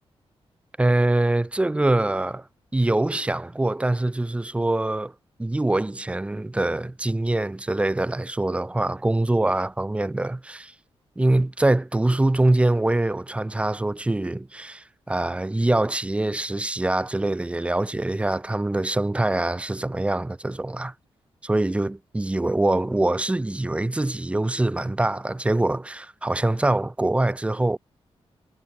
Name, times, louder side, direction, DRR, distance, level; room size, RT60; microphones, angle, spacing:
voice 1, 0.8-2.5 2.7-5.1 5.4-10.7 11.2-20.9 21.4-27.8, right 2 dB, 10° right, 3.7 m, -24 dB
wide cardioid pair, 180°, 11 cm